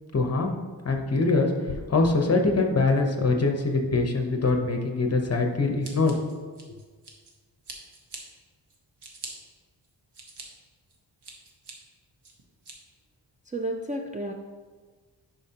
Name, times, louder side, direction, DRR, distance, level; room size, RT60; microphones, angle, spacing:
voice 1, 0.1-0.6 0.8-1.5 1.9-6.2, left 3 dB, 35° left, 3 dB, 0.9 m, -23 dB
sound 1, 1.7-2.1, left 6 dB, 65° left, 0.5 m, -37 dB
Scissors, 5.8-7.3 7.6-8.2 8.7-9.3 9.8-10.4 10.9-11.7 12.2-12.7, right 3 dB, 60° right, 1.3 m, -43 dB
voice 2, 13.5-14.3, right 1 dB, 20° right, 0 dB, 0.4 m, -31 dB
10.0 x 5.8 x 2.9 m, 1.4 s
wide cardioid pair, 150°, 45 cm